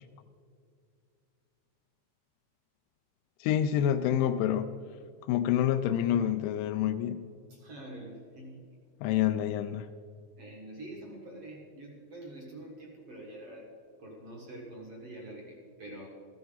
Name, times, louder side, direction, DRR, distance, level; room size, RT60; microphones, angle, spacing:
voice 1, 3.4-4.7 5.3-7.3 9.0-9.9, left 10 dB, 85° left, 8 dB, 2.6 m, -27 dB
voice 2, 7.5-8.6 10.4-13.7 14.0-16.1, right 1 dB, 55° right, -1 dB, 1.7 m, -46 dB
14.5 x 13.0 x 4.0 m, 2.2 s
omnidirectional pair, 5.1 m